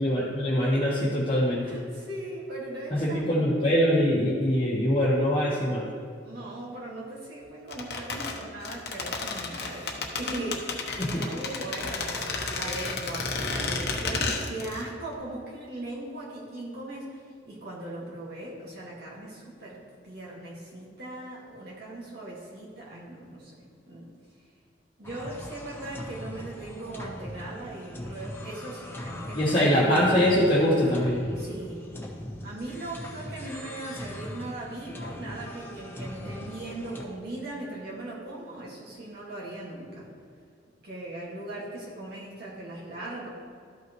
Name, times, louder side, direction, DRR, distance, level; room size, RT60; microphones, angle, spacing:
voice 1, 0.0-1.8 2.9-5.8 11.1-11.2 29.3-31.2, equal, 30° left, -8 dB, 1.2 m, -23 dB
voice 2, 1.6-3.3 6.2-24.1 25.0-29.9 31.4-31.8 32.4-40.1 40.8-43.3, right 1 dB, 60° right, -6 dB, 1.9 m, -39 dB
sound 1, 7.7-14.9 15.1-15.2, left 4 dB, 60° left, 1.0 m, -32 dB
sound 2, 25.0-37.0, left 1 dB, 15° left, 0.9 m, -40 dB
13.0 x 5.7 x 3.1 m, 2.3 s
head